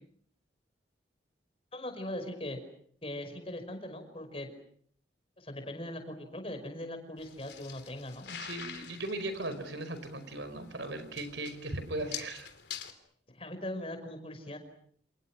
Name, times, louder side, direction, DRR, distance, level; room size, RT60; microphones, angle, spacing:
voice 1, 1.7-2.6 3.0-4.5 5.4-8.3 13.3-14.6, left 1 dB, 30° left, 7 dB, 5.5 m, -40 dB
sound 1, 7.2-12.9, left 9 dB, 70° left, 3.5 m, -46 dB
voice 2, 8.3-12.5, right 2 dB, 85° right, 11 dB, 5.0 m, -38 dB
29.5 x 28.5 x 6.1 m, 0.62 s
head